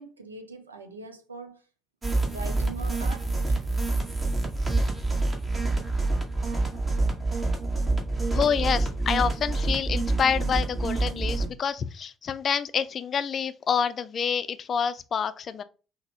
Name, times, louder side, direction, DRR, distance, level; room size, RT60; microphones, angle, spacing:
voice 1, 0.0-1.7 2.2-3.8, right 3 dB, 85° right, 0.5 m, -42 dB
sound 1, 2.0-11.5, right 2 dB, 25° right, 1.3 m, -27 dB
voice 2, 8.3-15.6, left 7 dB, 45° left, 0.4 m, -27 dB
5.8 x 2.1 x 2.9 m
figure-of-eight pair, 50°, 0 cm